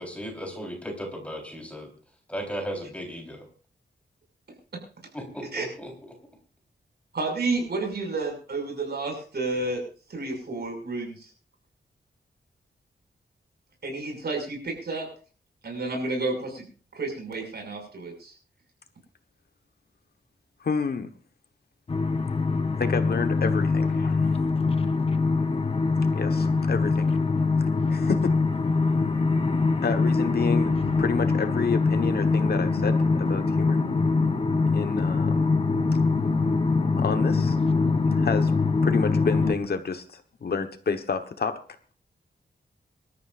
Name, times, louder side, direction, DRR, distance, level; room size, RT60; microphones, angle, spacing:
voice 1, 0.0-1.9 2.3-3.5 5.1-5.9, equal, 5° left, 4.1 m, -36 dB
voice 2, 7.1-9.8 10.1-11.3 13.8-15.1 15.6-16.6 16.9-18.3, right 3 dB, 60° right, 6.3 m, -30 dB
voice 3, 20.6-21.1 22.8-24.3 26.1-27.2 27.6-28.4 29.8-33.8 34.7-35.5 37.0-37.6 38.1-38.5 38.8-41.6, left 5 dB, 60° left, 1.2 m, -29 dB
sound 1, 21.9-39.5, left 4 dB, 30° left, 1.0 m, -23 dB
25.0 x 13.5 x 2.6 m
wide cardioid pair, 165°, 19 cm